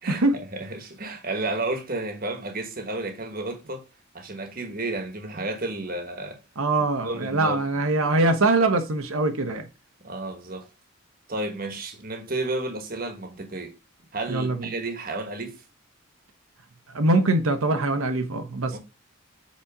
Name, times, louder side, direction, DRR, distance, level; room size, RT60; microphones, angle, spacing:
voice 1, 0.0-3.8 4.1-6.4 7.0-7.6 10.0-10.7 11.3-13.7 14.1-15.6 18.7-18.8, right 2 dB, 45° right, 1.5 m, -32 dB
voice 2, 6.6-9.7 14.3-14.7 16.9-18.8, right 2 dB, 90° right, 1.1 m, -23 dB
7.4 x 4.2 x 4.9 m
head